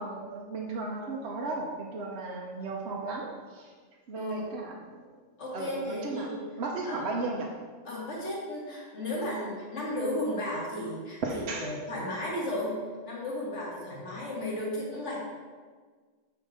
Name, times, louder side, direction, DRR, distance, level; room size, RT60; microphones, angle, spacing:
voice 1, 0.0-3.7 4.1-5.0 5.5-6.3 6.6-7.5 11.2-11.7, right 3 dB, 60° right, -2 dB, 1.1 m, -35 dB
voice 2, 5.4-6.4 6.9-7.1 7.9-12.8 13.1-15.2, left 1 dB, 70° left, -4 dB, 2.1 m, -34 dB
7.3 x 4.7 x 5.0 m, 1.5 s
omnidirectional pair, 1.3 m